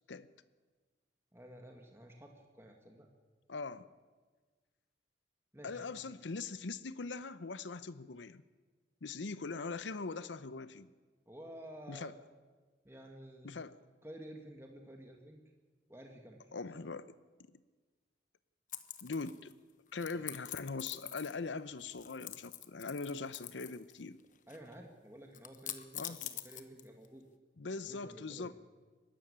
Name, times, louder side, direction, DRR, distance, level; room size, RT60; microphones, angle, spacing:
voice 1, 1.3-3.1 5.5-6.1 11.3-12.1 12.8-13.6 14.0-15.4 15.9-16.5 20.1-20.2 24.5-27.2 27.8-28.5, right 1 dB, 15° right, 2 dB, 1.8 m, -52 dB
voice 2, 3.5-3.9 5.6-8.4 9.0-10.9 11.9-12.1 13.4-13.8 16.5-17.1 19.0-19.5 19.9-24.2 26.0-26.2 27.6-28.5, left 4 dB, 85° left, 14 dB, 0.7 m, -41 dB
sound 1, 18.7-19.5 20.0-21.5 21.8-23.9 24.2-24.7 25.3-27.1, left 12 dB, 45° left, 1.1 m, -45 dB
23.0 x 13.0 x 10.0 m, 1.4 s
head